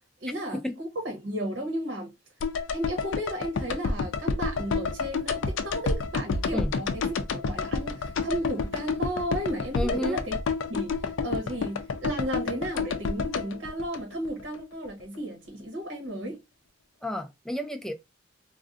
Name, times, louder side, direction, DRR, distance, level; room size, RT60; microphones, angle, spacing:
voice 1, 0.2-2.1 2.7-10.3 10.7-11.0 11.2-16.4, equal, 70° right, 0.9 m, -34 dB
sound 1, 2.4-14.6 14.9-15.0, left 4 dB, 80° left, 0.4 m, -30 dB
voice 2, 9.7-10.2 17.0-17.9, left 1 dB, 5° left, 0.3 m, -31 dB
2.5 x 2.1 x 3.6 m
head